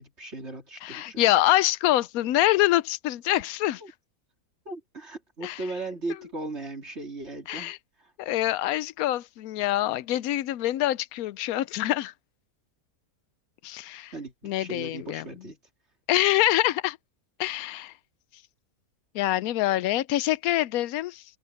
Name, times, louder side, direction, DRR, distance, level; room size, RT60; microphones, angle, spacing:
voice 1, 0.0-1.2 3.8-3.9 4.7-7.7 14.1-15.6, right 2 dB, 45° right, 3.6 m, -37 dB
voice 2, 0.8-3.8 5.4-5.6 7.5-7.8 8.2-12.1 13.6-14.1 14.4-15.5 16.1-17.0 17.4-17.9 19.1-21.2, left 15 dB, 80° left, 1.0 m, -25 dB
omnidirectional pair, 1.5 m